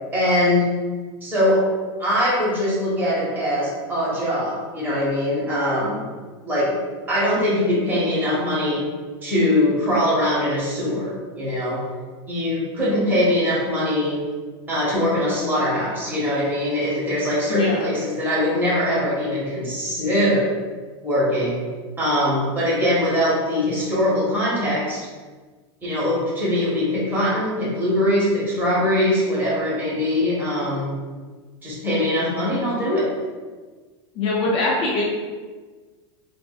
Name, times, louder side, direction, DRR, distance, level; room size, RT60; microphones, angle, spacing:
voice 1, 0.1-0.6 1.2-1.6 2.0-6.1 6.4-6.7 7.1-8.9 9.2-11.8 12.3-14.2 14.7-20.5 21.0-21.6 22.0-25.0 25.8-30.9 31.6-33.1, left 1 dB, 15° right, -8 dB, 1.2 m, -22 dB
voice 2, 17.5-17.8 34.2-35.0, left 2 dB, 40° left, -3 dB, 0.5 m, -22 dB
3.6 x 2.5 x 2.4 m, 1.4 s
supercardioid pair, 140°, 14 cm